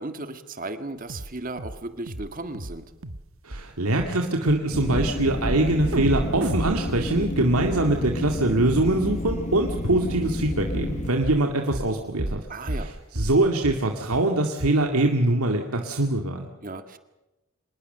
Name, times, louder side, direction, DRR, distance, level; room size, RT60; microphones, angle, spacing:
voice 1, 0.0-2.9 12.5-12.9 16.6-17.0, right 2 dB, 40° right, 9 dB, 1.7 m, -35 dB
sound 1, 1.1-1.3 1.6-1.8 2.1-2.3 2.5-2.8 3.0-3.2 3.5-3.6 4.0-4.1 4.5-4.6 5.0-5.2 5.4-5.6 5.9-8.0 8.3-8.4 8.8-8.9 9.3-9.4 9.8-9.9 10.3-10.4 10.7-10.9 11.2-11.4 11.7-11.9 12.2-12.4 12.7-12.9 13.2-13.4 13.6-13.8 14.1-14.2 14.6-14.7, right 1 dB, 65° right, 1.5 m, -31 dB
voice 2, 3.4-12.4 12.7-16.5, right 2 dB, 85° right, 3 dB, 2.1 m, -23 dB
sound 2, 4.7-11.1, left 1 dB, 30° left, 1.2 m, -30 dB
26.0 x 20.5 x 6.7 m, 1.0 s
head